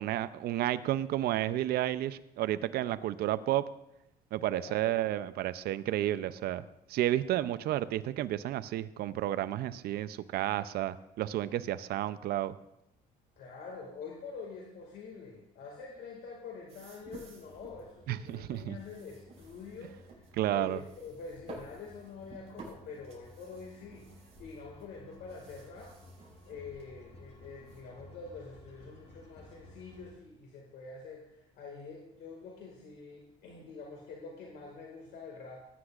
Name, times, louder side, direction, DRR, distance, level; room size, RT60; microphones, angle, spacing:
voice 1, 0.0-3.6 4.3-6.6 6.9-12.5 18.1-18.8 20.3-20.8, right 13 dB, 70° right, 14 dB, 0.5 m, -31 dB
voice 2, 4.4-5.1 7.2-7.5 13.4-24.1 24.4-25.9 26.4-35.6, left 4 dB, 75° left, 0 dB, 2.0 m, -46 dB
sound 1, 16.7-27.8, right 3 dB, 40° right, 5.1 m, -54 dB
sound 2, 17.4-30.1, left 1 dB, 40° left, 2.2 m, -56 dB
19.0 x 9.7 x 2.5 m, 0.83 s
cardioid pair, 110°, 17 cm